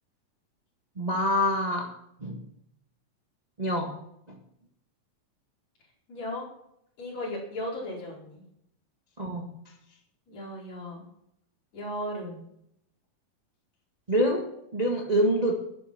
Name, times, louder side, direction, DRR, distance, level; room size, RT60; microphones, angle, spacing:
voice 1, 1.0-1.9 2.2-2.4 3.6-3.9 4.3-4.4 9.2-9.5 14.1-14.4 14.7-15.5, equal, 25° right, 0 dB, 0.8 m, -25 dB
voice 2, 6.1-6.5 7.0-8.4 10.3-11.0 11.7-12.4, left 1 dB, 55° left, -4 dB, 5.7 m, -36 dB
12.0 x 9.9 x 6.0 m, 0.75 s
omnidirectional pair, 3.9 m